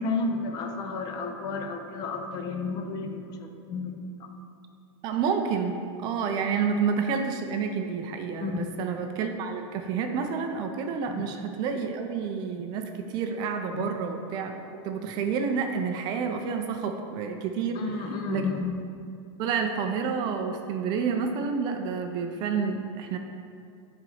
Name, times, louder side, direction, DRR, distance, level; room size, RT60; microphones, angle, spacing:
voice 1, 0.0-4.3 6.4-6.5 8.4-8.7 11.1-11.3 13.7-13.9 17.7-18.6, left 4 dB, 25° left, 4 dB, 0.6 m, -32 dB
voice 2, 5.0-14.5 14.8-17.8 18.3-18.5 19.4-23.2, right 6 dB, 30° right, 5 dB, 0.4 m, -29 dB
9.6 x 4.0 x 4.9 m, 2.4 s
supercardioid pair, 160°, 15 cm